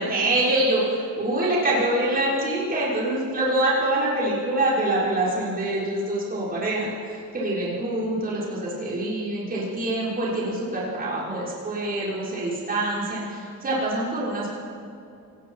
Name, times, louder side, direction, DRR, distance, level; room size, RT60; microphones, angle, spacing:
voice 1, 0.0-14.5, right 1 dB, 25° right, -6 dB, 6.0 m, -25 dB
26.5 x 19.5 x 5.8 m, 2.5 s
cardioid pair, 145°, 35 cm